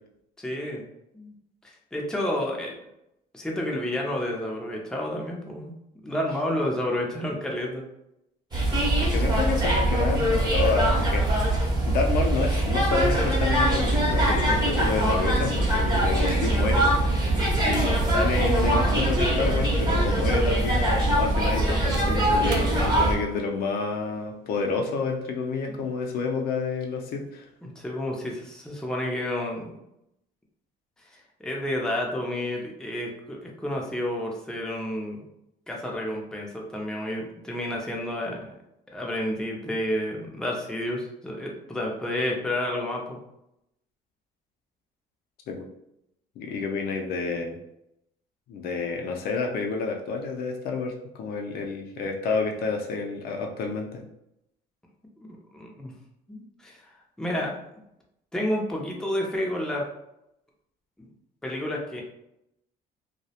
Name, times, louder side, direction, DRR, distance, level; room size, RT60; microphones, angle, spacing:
voice 1, 0.4-0.8 1.1-1.3 1.6-2.8 3.3-5.7 6.0-7.8 25.8-25.9 27.6-29.7 31.1-35.3 35.7-38.5 38.9-43.2 55.5-55.9 56.3-56.9 57.2-57.6 58.3-59.8 61.0-61.1 61.4-62.0, left 1 dB, 5° left, -1 dB, 0.4 m, -30 dB
sound 1, 8.5-23.1, right 1 dB, 25° right, 0.7 m, -23 dB
voice 2, 9.0-11.4 11.8-17.1 17.6-27.5 45.5-45.7 46.4-47.6 48.5-54.0, left 4 dB, 65° left, 2 dB, 0.4 m, -29 dB
sound 2, 13.7-22.8, right 3 dB, 85° right, 0.4 m, -37 dB
2.3 x 2.0 x 2.7 m, 0.82 s
cardioid pair, 110°, 17 cm